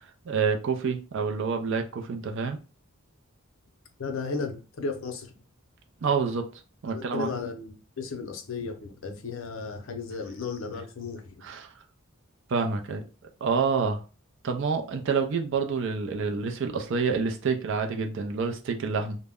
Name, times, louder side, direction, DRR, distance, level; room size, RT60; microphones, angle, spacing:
voice 1, 0.3-2.6 6.0-6.5 6.8-7.3 11.4-11.7 12.5-13.0 13.4-14.0 14.4-19.2, right 5 dB, 60° right, 0.4 m, -27 dB
voice 2, 4.0-5.3 6.9-11.4, left 4 dB, 65° left, 0.5 m, -34 dB
2.1 x 2.0 x 3.4 m
head